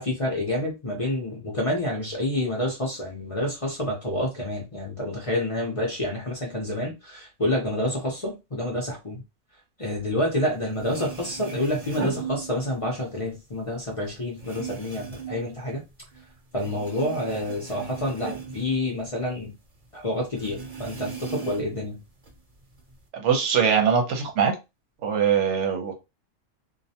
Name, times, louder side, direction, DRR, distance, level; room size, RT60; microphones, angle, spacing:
voice 1, 0.0-9.2 9.8-15.8 16.5-19.5 19.9-22.0, left 1 dB, 35° left, 0.6 m, -28 dB
sound 1, 10.5-10.6 10.7-13.0 13.3-16.2 16.5-19.5 19.8-19.9 20.4-21.8 22.2-23.0, right 6 dB, 35° right, 0.8 m, -37 dB
voice 2, 23.1-24.5 25.0-25.9, right 7 dB, 70° right, 1.0 m, -22 dB
2.4 x 2.1 x 2.7 m
omnidirectional pair, 1.3 m